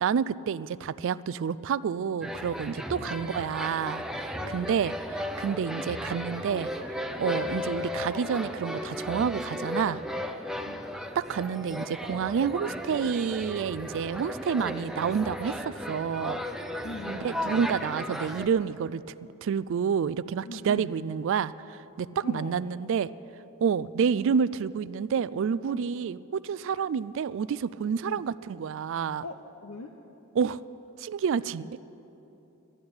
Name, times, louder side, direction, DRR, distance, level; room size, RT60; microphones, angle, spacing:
voice 1, 0.0-6.7 7.2-10.0 11.2-16.4 17.1-19.0 19.4-23.1 23.6-29.2 30.4-30.6 31.0-31.7, right 7 dB, 60° right, 18 dB, 0.3 m, -29 dB
sound 1, 2.2-18.5, left 1 dB, ahead, 0.6 m, -35 dB
voice 2, 2.9-3.7 4.4-4.8 10.7-10.8 16.8-17.7 20.5-20.9 22.2-22.6 25.7-25.8 28.0-28.3 29.2-29.9 31.6-31.7, left 2 dB, 80° left, 5 dB, 0.7 m, -42 dB
12.0 x 11.5 x 8.7 m, 3.0 s
head